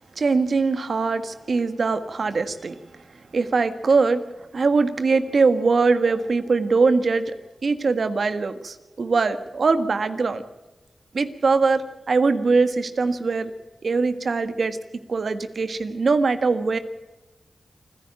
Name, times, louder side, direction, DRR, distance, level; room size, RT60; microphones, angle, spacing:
voice 1, 0.1-2.8 3.3-7.4 7.6-10.4 11.1-13.5 13.8-14.8 15.1-16.8, right 4 dB, 70° right, 10 dB, 1.5 m, -22 dB
28.5 x 10.5 x 8.9 m, 1.1 s
cardioid pair, 45°, 0 cm